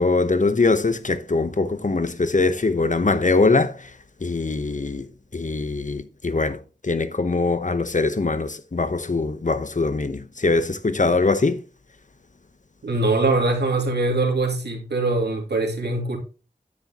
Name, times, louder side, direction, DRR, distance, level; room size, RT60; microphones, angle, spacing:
voice 1, 0.0-3.8 4.2-11.6, left 3 dB, 50° left, 0.9 m, -22 dB
voice 2, 12.8-16.2, right 2 dB, 90° right, 2.5 m, -22 dB
9.7 x 9.6 x 2.9 m
wide cardioid pair, 50°, 17 cm